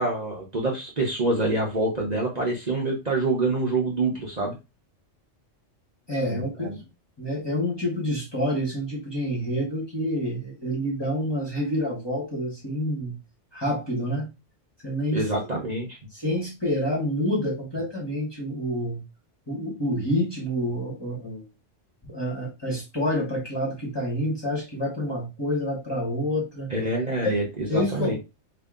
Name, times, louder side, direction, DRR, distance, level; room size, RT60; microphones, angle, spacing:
voice 1, 0.0-4.6 6.3-6.8 15.1-16.0 26.7-28.2, right 2 dB, 40° right, -2 dB, 0.9 m, -26 dB
voice 2, 6.1-6.7 7.2-13.2 13.5-14.3 14.8-15.2 16.1-19.0 19.5-21.5 22.1-26.7 27.2-27.4 27.7-28.2, equal, 20° left, -3 dB, 1.2 m, -28 dB
2.9 x 2.8 x 3.6 m, 0.25 s
omnidirectional pair, 1.2 m